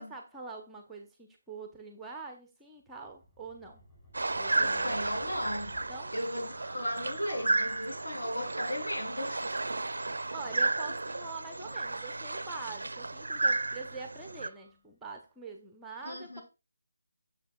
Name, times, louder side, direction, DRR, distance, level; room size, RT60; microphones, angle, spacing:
voice 1, 0.0-3.8 4.4-5.0 5.9-6.1 10.3-16.4, right 4 dB, 5° right, 0.6 m, -44 dB
sound 1, 2.9-14.8, left 1 dB, 15° left, 2.9 m, -56 dB
sound 2, 4.1-14.5, right 2 dB, 60° right, 0.4 m, -33 dB
voice 2, 4.6-5.8 6.1-9.6 10.2-10.3 16.0-16.4, equal, 65° left, 3.1 m, -36 dB
8.3 x 6.7 x 2.3 m
figure-of-eight pair, 155°, 0 cm